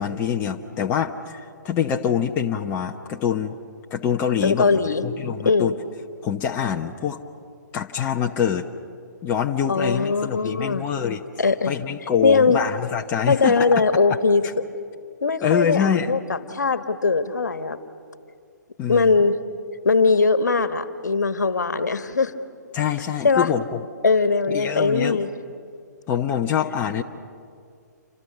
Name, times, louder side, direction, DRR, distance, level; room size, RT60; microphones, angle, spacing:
voice 1, 0.0-3.6 3.9-4.7 5.0-5.7 6.2-7.2 7.7-8.7 9.2-11.2 11.7-13.7 15.4-16.1 18.8-19.1 22.7-23.8 24.5-25.2 26.1-27.0, left 8 dB, 20° left, 4 dB, 0.9 m, -25 dB
voice 2, 4.4-5.0 5.4-5.7 9.7-10.8 11.4-11.8 12.2-12.6 13.3-14.7 15.2-17.8 18.9-19.4 19.8-22.4 23.2-23.5 24.0-25.3, left 4 dB, 70° left, 11 dB, 1.5 m, -20 dB
28.5 x 26.0 x 6.9 m, 2.3 s
figure-of-eight pair, 130°, 10 cm